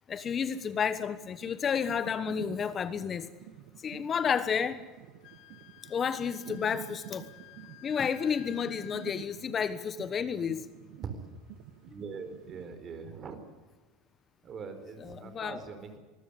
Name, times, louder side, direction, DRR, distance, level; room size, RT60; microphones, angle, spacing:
voice 1, 0.1-3.3 3.8-4.8 5.9-7.3 7.8-10.7 15.0-15.6, left 7 dB, 35° left, 14 dB, 1.3 m, -31 dB
sound 1, 0.6-12.7, right 14 dB, 65° right, 1.0 m, -49 dB
Wind instrument woodwind instrument, 5.2-9.2, left 16 dB, 60° left, 1.7 m, -53 dB
voice 2, 11.9-13.4 14.4-16.0, right 5 dB, 40° right, 9 dB, 4.4 m, -42 dB
24.0 x 13.5 x 10.0 m, 1.3 s
hypercardioid pair, 85°, 0 cm